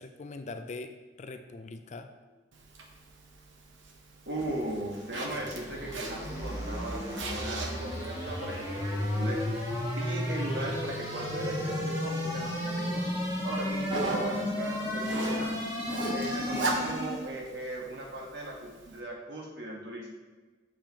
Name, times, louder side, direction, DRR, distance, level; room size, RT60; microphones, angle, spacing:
voice 1, 0.0-2.1, left 3 dB, 40° left, 8 dB, 0.4 m, -42 dB
Zipper (clothing), 2.5-19.0, right 2 dB, 90° right, 1.0 m, -40 dB
voice 2, 4.3-9.7 10.0-15.6 16.1-20.1, right 1 dB, 60° right, -1 dB, 1.4 m, -38 dB
sound 1, 5.1-17.3, left 1 dB, 20° right, 1.7 m, -33 dB
7.5 x 6.7 x 3.0 m, 1.3 s
head